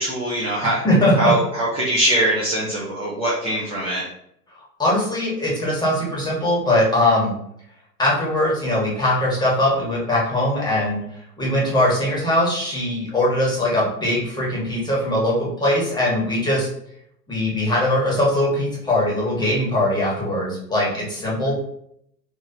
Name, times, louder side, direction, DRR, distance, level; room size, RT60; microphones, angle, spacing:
voice 1, 0.0-0.8 1.2-4.1, right 1 dB, 10° right, -6 dB, 0.6 m, -22 dB
voice 2, 0.8-1.3 4.8-7.3 8.0-11.0 11.4-16.7 17.3-21.5, left 1 dB, 10° left, -5 dB, 1.3 m, -21 dB
4.3 x 2.8 x 2.7 m, 0.71 s
figure-of-eight pair, 100°, 48 cm